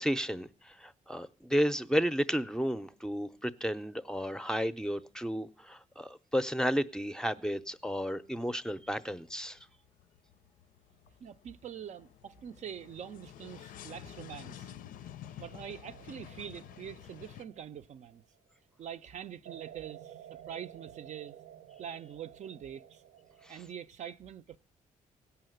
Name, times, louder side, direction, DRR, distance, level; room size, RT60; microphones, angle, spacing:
voice 1, 0.0-9.6 23.5-23.6, equal, 5° left, 0.5 m, -32 dB
sound 1, 7.6-7.9 8.3-17.5, left 11 dB, 80° left, 0.5 m, -50 dB
voice 2, 11.2-14.7 15.4-18.2 18.8-21.4 21.8-23.0 23.5-24.6, right 9 dB, 55° right, 0.5 m, -44 dB
sound 2, 15.5-18.5 19.4-23.7, right 11 dB, 90° right, 0.9 m, -53 dB
17.0 x 5.7 x 7.8 m
cardioid pair, 105°, 14 cm